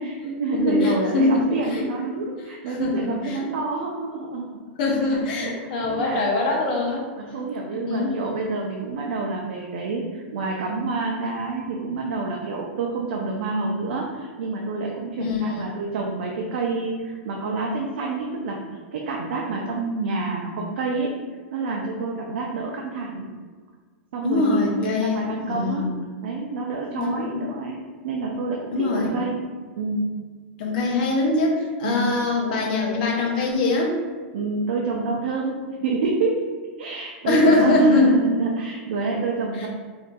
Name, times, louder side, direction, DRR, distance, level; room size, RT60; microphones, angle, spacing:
voice 1, 0.0-4.4 5.1-6.3 7.2-21.1 21.5-23.3 24.1-25.9 26.2-28.6 28.9-29.3 29.8-30.1 31.8-32.0 34.3-36.4 36.8-39.7, right 3 dB, 70° right, -1 dB, 0.5 m, -28 dB
voice 2, 0.5-1.8 2.7-3.5 4.8-7.1 7.9-8.1 15.2-15.8 24.2-25.9 27.0-27.5 28.7-29.2 30.6-34.0 37.2-38.2 39.5-39.7, left 2 dB, 50° left, -1 dB, 0.7 m, -22 dB
3.8 x 2.6 x 2.3 m, 1.5 s
supercardioid pair, 165°, 6 cm